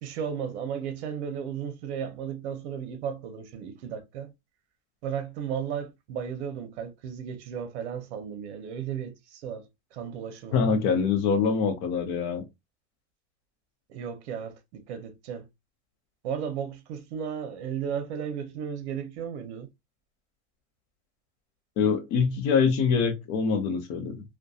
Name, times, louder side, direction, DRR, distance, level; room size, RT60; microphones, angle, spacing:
voice 1, 0.0-4.3 5.0-9.7 9.9-10.7 13.9-15.5 16.2-19.7, right 8 dB, 70° right, 0.7 m, -34 dB
voice 2, 10.5-12.4 21.8-24.2, left 5 dB, 35° left, 0.5 m, -24 dB
2.6 x 2.2 x 2.3 m
supercardioid pair, 160°, 34 cm